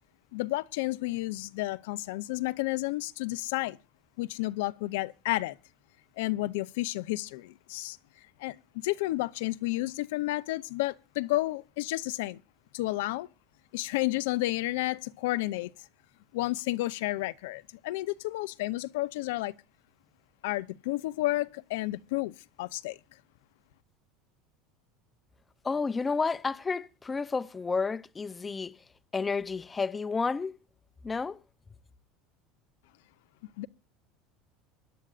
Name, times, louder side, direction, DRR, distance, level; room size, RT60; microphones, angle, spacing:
voice 1, 0.3-3.8 4.2-5.6 6.2-8.0 8.4-8.6 8.8-12.4 12.7-13.3 13.7-15.7 16.3-19.5 20.4-23.0 33.6-33.7, left 18 dB, 85° left, 0.6 m, -31 dB
voice 2, 25.6-28.8 29.1-30.6 31.0-31.4, left 4 dB, 15° left, 0.5 m, -31 dB
24.5 x 11.0 x 2.4 m
supercardioid pair, 135°, 0 cm